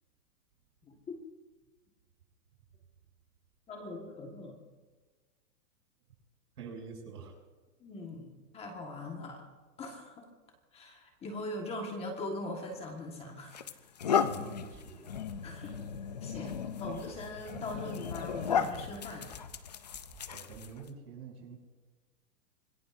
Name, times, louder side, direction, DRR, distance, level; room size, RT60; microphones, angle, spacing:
voice 1, 3.7-4.6 7.8-9.4 9.8-10.3 10.7-13.6 15.4-15.8 16.2-19.3, left 2 dB, 15° left, 2 dB, 1.5 m, -41 dB
voice 2, 6.6-7.4 14.2-15.1 20.3-21.6, right 5 dB, 85° right, 1 dB, 7.1 m, -46 dB
sound 1, 12.7-12.9 13.5-20.9, left 7 dB, 30° left, 0.4 m, -35 dB
sound 2, 14.7-14.8 15.1-15.4 15.7-16.0 16.3-16.6 16.9-17.2 17.5-17.8 18.1-18.4 18.7-19.0 19.3-19.6 19.9-20.2 20.5-20.7, right 3 dB, 10° right, 3.1 m, -54 dB
26.0 x 20.5 x 2.6 m, 1.3 s
supercardioid pair, 165°, 46 cm